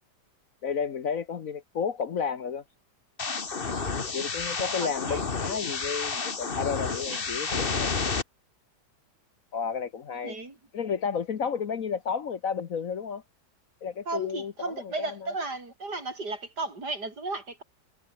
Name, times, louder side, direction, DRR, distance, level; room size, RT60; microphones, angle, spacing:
voice 1, 0.6-2.6 4.1-7.9 9.5-10.4 10.7-13.2 13.8-14.5 14.8-15.3, left 6 dB, 55° left, 1.3 m, -32 dB
sound 1, 3.2-8.2, left 4 dB, 35° left, 1.7 m, -30 dB
voice 2, 4.8-5.3 7.1-7.2 10.2-10.6 14.1-17.6, right 3 dB, 65° right, 5.6 m, -35 dB
omnidirectional pair, 1.9 m